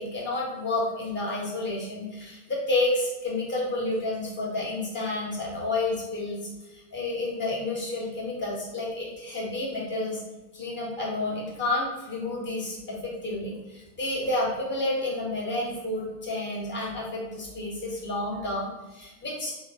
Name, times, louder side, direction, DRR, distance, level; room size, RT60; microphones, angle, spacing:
voice 1, 0.0-6.4 6.7-10.2 10.5-19.5, left 2 dB, 25° left, -4 dB, 1.2 m, -30 dB
2.8 x 2.0 x 3.5 m, 1.1 s
hypercardioid pair, 75°, 41 cm